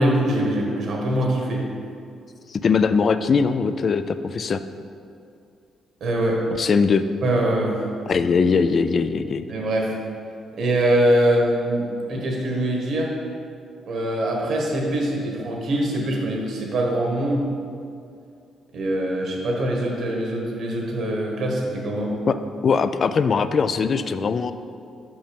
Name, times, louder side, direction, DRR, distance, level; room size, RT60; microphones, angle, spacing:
voice 1, 0.0-1.7 6.0-6.4 7.2-7.8 9.5-9.9 10.5-13.1 13.9-17.5 18.7-22.2, right 1 dB, 65° right, -1 dB, 1.5 m, -23 dB
voice 2, 2.5-4.6 6.5-7.1 8.1-9.4 22.3-22.4 22.6-24.5, left 5 dB, 45° left, 11 dB, 0.3 m, -21 dB
5.9 x 5.4 x 5.2 m, 2.4 s
cardioid pair, 90°, 0 cm